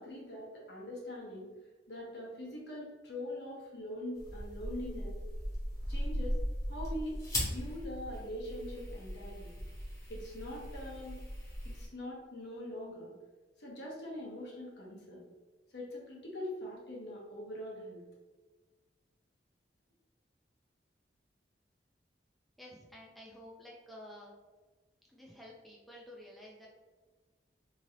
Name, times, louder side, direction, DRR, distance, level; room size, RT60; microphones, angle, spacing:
voice 1, 0.0-1.5 1.9-5.2 5.9-6.4 6.7-7.1 7.4-9.6 10.1-11.2 11.6-13.1 13.6-15.2 15.7-18.0, left 1 dB, 65° left, -4 dB, 0.9 m, -43 dB
sound 1, 4.1-11.9, equal, 15° left, 0.8 m, -38 dB
voice 2, 22.6-24.3 25.0-26.7, left 1 dB, ahead, -4 dB, 0.4 m, -51 dB
3.0 x 2.7 x 2.7 m, 1.3 s
head